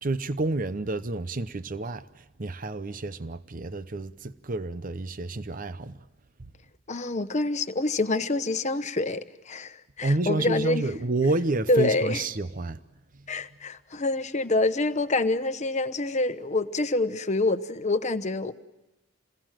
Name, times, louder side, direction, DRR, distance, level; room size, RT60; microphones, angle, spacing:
voice 1, 0.0-6.0 10.0-12.8, right 2 dB, 45° right, 0.8 m, -29 dB
voice 2, 6.9-10.9 11.7-12.2 13.3-18.5, left 2 dB, 35° left, 1.0 m, -26 dB
28.5 x 20.5 x 7.5 m
head